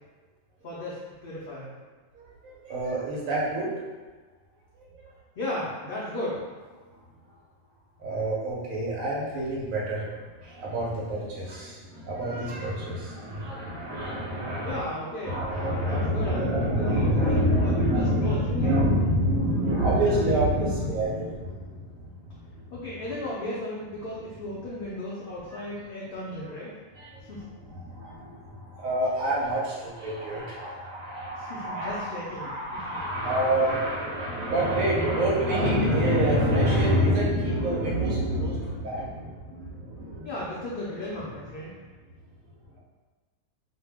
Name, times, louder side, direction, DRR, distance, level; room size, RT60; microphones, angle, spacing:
voice 1, 0.6-1.7 5.4-6.4 14.6-15.4 15.8-18.7 22.7-26.7 27.3-27.4 31.4-33.0 40.2-41.7, left 1 dB, 65° left, -6 dB, 0.6 m, -35 dB
voice 2, 2.1-3.7 4.7-5.1 8.0-14.9 15.2-22.7 25.5-25.6 26.9-27.3 27.7-40.3, equal, 80° right, -4 dB, 1.0 m, -27 dB
2.5 x 2.1 x 3.3 m, 1.4 s
omnidirectional pair, 1.4 m